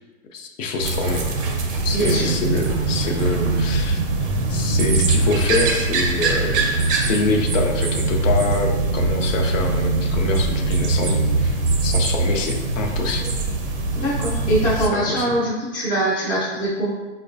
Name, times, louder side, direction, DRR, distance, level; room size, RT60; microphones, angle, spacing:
voice 1, 0.3-1.3 1.8-13.3 14.8-15.3, left 3 dB, 75° left, 3 dB, 0.6 m, -26 dB
sound 1, 0.8-14.9, right 3 dB, 45° right, 0.5 m, -22 dB
voice 2, 1.9-2.3 13.9-16.9, right 1 dB, 10° left, -8 dB, 0.5 m, -23 dB
4.6 x 2.2 x 2.5 m, 1.2 s
hypercardioid pair, 150°, 39 cm